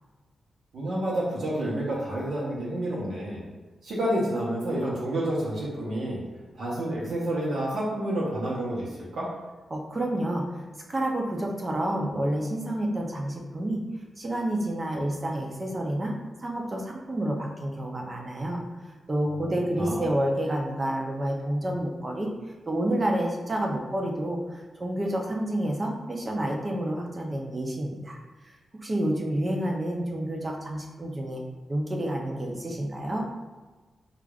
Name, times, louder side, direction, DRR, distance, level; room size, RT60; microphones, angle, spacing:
voice 1, 0.7-3.4 3.8-6.2 6.5-9.3 19.7-20.1, right 1 dB, 70° right, -6 dB, 0.8 m, -29 dB
voice 2, 9.7-10.5 10.9-13.8 14.2-16.1 16.4-18.6 19.1-22.3 22.7-28.2 28.8-31.4 31.7-33.3, right 1 dB, 25° right, 0 dB, 0.5 m, -29 dB
4.8 x 2.4 x 2.3 m, 1.3 s
wide cardioid pair, 175°, 0 cm